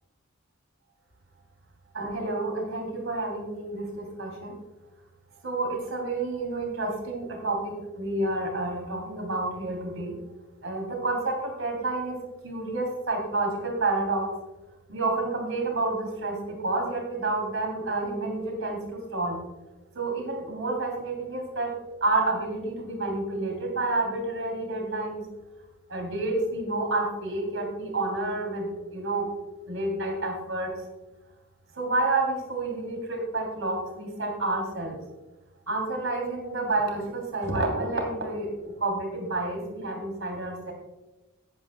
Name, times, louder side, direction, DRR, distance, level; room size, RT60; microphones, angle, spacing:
voice 1, 1.9-4.5 5.4-10.1 10.6-12.1 12.4-14.3 14.9-19.4 19.9-21.7 22.0-25.2 25.9-29.3 29.7-30.7 31.8-34.9 35.7-40.7, right 2 dB, 70° right, 1 dB, 3.1 m, -29 dB
16.0 x 9.3 x 2.3 m, 1.1 s
head